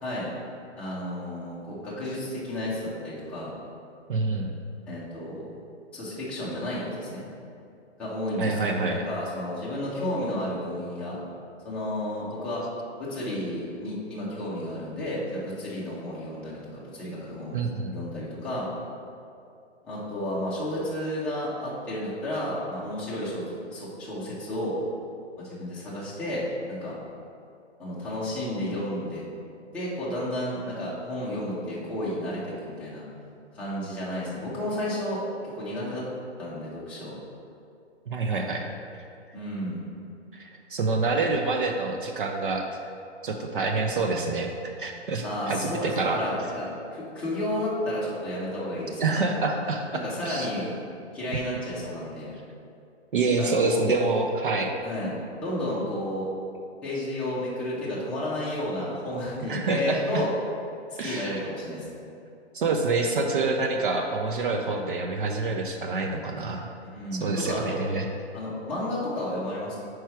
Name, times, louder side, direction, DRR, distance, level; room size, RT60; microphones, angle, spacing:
voice 1, 0.8-3.5 4.9-5.5 5.9-7.2 8.0-11.2 11.6-12.6 13.0-17.6 17.9-18.7 19.8-24.8 25.4-27.0 27.8-29.2 29.7-33.0 33.5-36.0 36.4-37.2 39.3-39.8 45.2-49.3 49.9-50.7 51.1-52.3 53.4-53.9 54.8-56.3 56.8-60.3 60.9-61.9 66.9-67.8 68.3-69.8, left 1 dB, 5° left, -9 dB, 0.6 m, -32 dB
voice 2, 4.1-4.5 8.4-9.0 17.5-18.0 38.1-38.7 40.3-42.6 43.2-44.5 44.8-46.2 49.0-49.8 50.2-50.5 51.3-51.4 53.1-54.7 59.5-60.2 61.0-61.4 62.5-66.7 67.2-68.1, right 3 dB, 50° right, 3 dB, 0.5 m, -27 dB
5.6 x 4.6 x 4.7 m, 2.6 s
hypercardioid pair, 155°, 36 cm